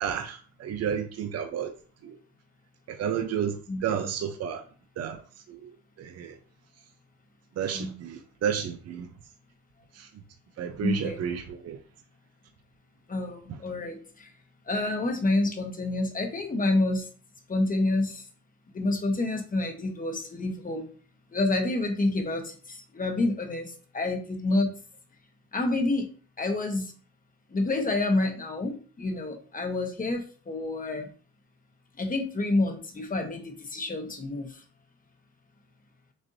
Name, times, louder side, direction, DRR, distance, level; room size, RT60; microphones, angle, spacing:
voice 1, 0.0-1.7 2.0-2.1 3.0-4.6 5.0-5.2 5.5-5.6 6.0-6.3 7.6-9.1 10.6-11.8, right 8 dB, 55° right, 0.7 m, -31 dB
voice 2, 10.8-11.2 13.1-14.3 14.7-17.0 17.5-18.2 18.7-20.9 21.3-24.7 25.5-26.1 26.4-26.9 27.5-31.1 32.0-34.6, left 2 dB, 30° left, 1.1 m, -28 dB
6.4 x 2.6 x 2.7 m
cardioid pair, 90°, 30 cm